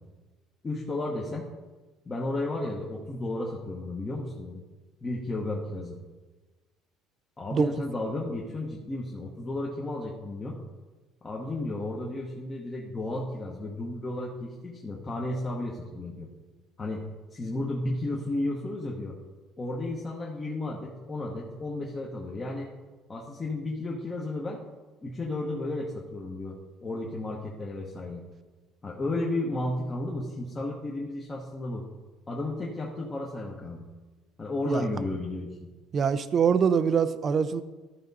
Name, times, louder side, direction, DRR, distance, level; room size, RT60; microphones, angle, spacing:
voice 1, 0.6-1.5 2.0-4.6 5.0-6.0 7.4-10.6 11.2-16.3 16.8-17.0 17.3-19.2 19.6-22.7 23.1-24.6 25.0-28.2 28.8-31.9 32.3-33.8 34.4-35.5, left 2 dB, 20° left, -3 dB, 1.0 m, -33 dB
voice 2, 35.9-37.6, right 6 dB, 35° right, 13 dB, 0.5 m, -24 dB
13.0 x 5.1 x 4.1 m, 1.2 s
cardioid pair, 140°, 0 cm